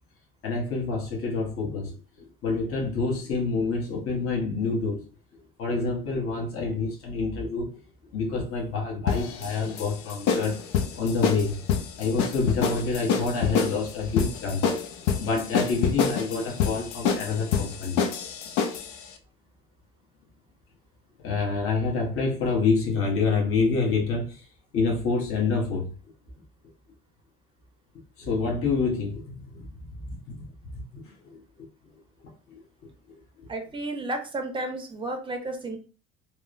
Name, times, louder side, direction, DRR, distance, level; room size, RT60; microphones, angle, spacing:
voice 1, 0.4-5.0 5.6-7.7 8.1-10.6 10.9-11.6 12.0-14.7 15.2-18.0 18.7-18.9 21.2-24.4 24.7-25.9 28.2-29.7 31.0-31.4 32.5-32.6, left 4 dB, 45° left, 1.0 m, -27 dB
sound 1, 9.1-19.0, left 6 dB, 70° left, 0.5 m, -27 dB
voice 2, 33.5-35.8, right 2 dB, 15° right, 0.6 m, -32 dB
2.9 x 2.0 x 2.4 m
supercardioid pair, 110°, 31 cm